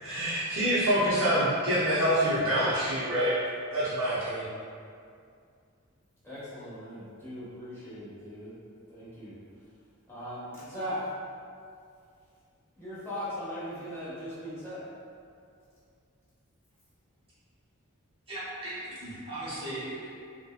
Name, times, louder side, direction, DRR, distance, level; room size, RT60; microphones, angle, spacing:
voice 1, 0.0-3.3 3.7-4.5, equal, 65° right, -10 dB, 0.5 m, -26 dB
voice 2, 6.2-8.6 8.9-9.3 10.1-11.0 12.7-14.8, equal, 10° left, -12 dB, 0.9 m, -39 dB
voice 3, 18.3-20.2, right 1 dB, 25° right, -10 dB, 0.8 m, -38 dB
2.7 x 2.1 x 2.3 m, 2.3 s
head